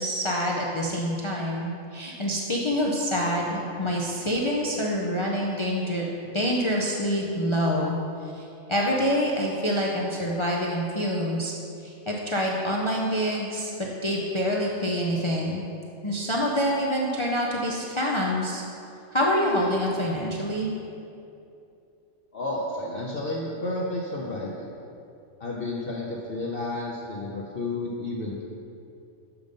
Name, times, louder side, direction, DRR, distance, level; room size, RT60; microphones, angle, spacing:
voice 1, 0.0-6.0 6.3-8.0 8.2-11.5 11.8-15.6 16.0-18.6 19.1-20.7, equal, 40° left, -2 dB, 0.4 m, -26 dB
voice 2, 22.3-24.7 25.4-28.4, left 2 dB, 55° left, -4 dB, 0.9 m, -31 dB
7.1 x 5.2 x 5.3 m, 2.7 s
omnidirectional pair, 1.3 m